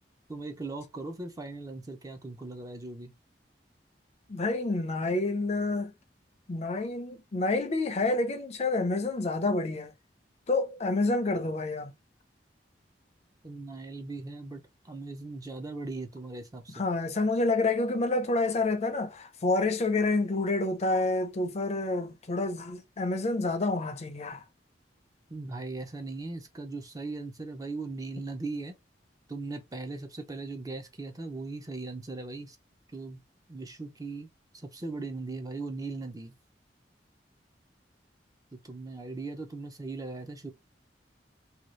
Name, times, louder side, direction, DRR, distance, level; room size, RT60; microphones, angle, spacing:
voice 1, 0.3-3.1 13.4-16.8 25.3-28.8 29.3-32.6 32.9-33.2 33.5-34.3 34.5-36.3 38.6-40.5, right 3 dB, 20° right, 0.5 m, -39 dB
voice 2, 4.3-5.9 6.5-9.9 10.5-11.9 16.7-24.4, left 2 dB, 40° left, 0.5 m, -28 dB
2.7 x 2.3 x 3.1 m
head